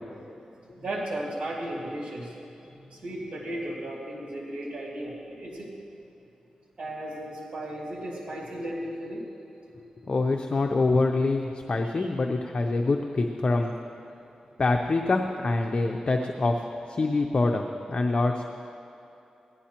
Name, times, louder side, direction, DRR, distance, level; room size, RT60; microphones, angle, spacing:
voice 1, 0.6-5.7 6.8-9.2 11.8-12.1, right 1 dB, 60° right, -4 dB, 2.5 m, -35 dB
voice 2, 10.0-13.8 14.6-18.5, left 3 dB, 45° left, 3 dB, 0.6 m, -25 dB
16.5 x 11.0 x 2.9 m, 2.9 s
cardioid pair, 70°, 2 cm